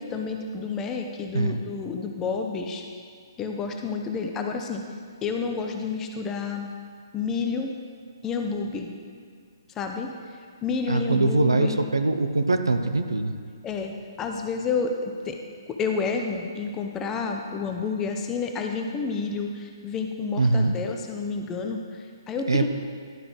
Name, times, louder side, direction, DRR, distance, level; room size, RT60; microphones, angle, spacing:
voice 1, 0.0-2.8 3.4-4.8 5.2-6.7 7.1-7.7 8.2-8.9 9.8-10.1 10.6-11.8 13.6-15.4 15.7-22.7, left 5 dB, 15° left, 3 dB, 0.5 m, -30 dB
voice 2, 10.9-13.3 20.4-20.7 22.5-22.7, right 3 dB, 75° right, 7 dB, 0.5 m, -22 dB
11.5 x 4.6 x 3.8 m, 2.1 s
figure-of-eight pair, 130°, 2 cm